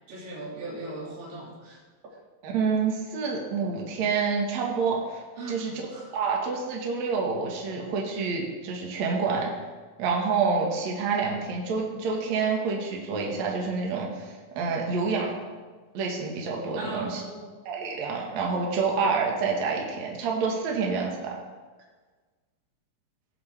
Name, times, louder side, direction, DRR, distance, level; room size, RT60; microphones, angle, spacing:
voice 1, 0.1-1.8 5.4-6.1 16.8-17.5, right 2 dB, 90° right, -4 dB, 4.4 m, -38 dB
voice 2, 2.4-5.7 6.1-9.5 10.0-15.3 15.9-17.2 17.7-21.4, right 5 dB, 55° right, -1 dB, 2.4 m, -28 dB
17.5 x 7.0 x 3.4 m, 1.4 s
omnidirectional pair, 4.4 m